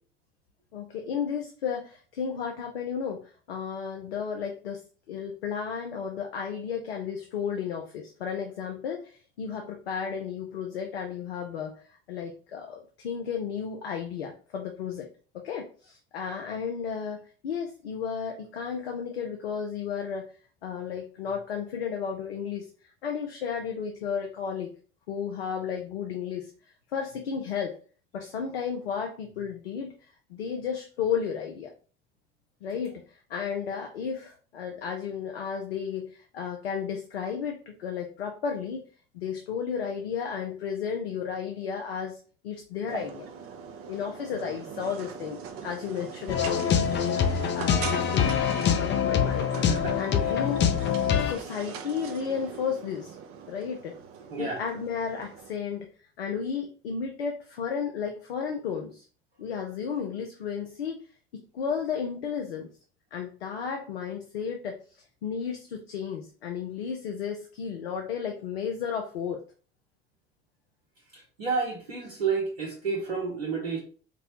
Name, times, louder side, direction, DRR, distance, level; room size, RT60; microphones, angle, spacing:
voice 1, 0.7-15.1 15.3-20.3 20.6-22.7 23.0-24.7 25.1-26.5 26.9-27.7 28.1-29.9 30.3-31.7 32.6-38.8 39.1-42.2 42.4-43.3 43.9-49.5 50.0-50.7 51.1-53.2 53.5-53.9 54.4-55.9 56.2-59.1 59.4-61.1 61.3-62.7 63.1-69.4, left 7 dB, 85° left, 3 dB, 0.5 m, -33 dB
sound 1, 42.9-55.5, right 7 dB, 50° right, 0.6 m, -41 dB
sound 2, 46.3-51.3, left 8 dB, 40° left, 0.5 m, -25 dB
voice 2, 49.5-50.0 54.3-54.6 71.1-73.8, right 4 dB, 85° right, -4 dB, 0.9 m, -30 dB
4.1 x 2.1 x 2.8 m, 0.39 s
hypercardioid pair, 60°, 30 cm